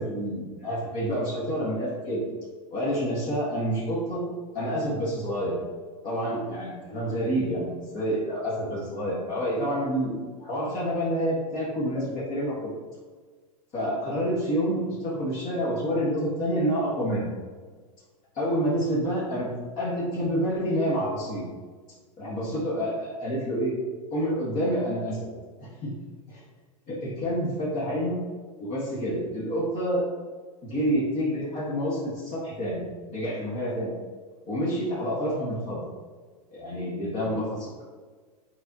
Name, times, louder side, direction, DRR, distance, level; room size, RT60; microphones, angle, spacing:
voice 1, 0.0-2.2 2.7-4.2 4.5-5.6 6.0-12.7 13.7-17.3 18.3-19.5 19.8-21.4 22.2-23.8 24.1-25.3 25.6-25.9 26.3-26.4 26.9-28.2 28.6-30.0 30.6-32.8 33.1-33.9 34.5-35.8 36.5-37.8, equal, 45° left, -7 dB, 1.8 m, -28 dB
6.7 x 4.8 x 2.9 m, 1.5 s
hypercardioid pair, 105°, 18 cm